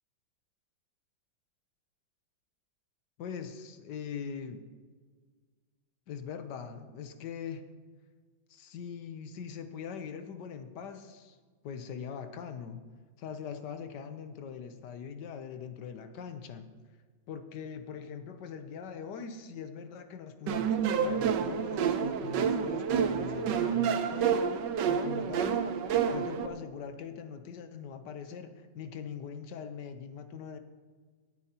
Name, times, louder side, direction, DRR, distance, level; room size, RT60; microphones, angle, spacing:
voice 1, 3.2-4.6 6.1-7.6 8.5-11.4 11.6-12.8 13.2-16.7 17.3-25.6 26.1-30.6, left 7 dB, 65° left, 8 dB, 1.3 m, -42 dB
sound 1, 20.5-26.5, right 7 dB, 70° right, 1.3 m, -29 dB
19.0 x 9.0 x 2.9 m, 1.5 s
omnidirectional pair, 2.1 m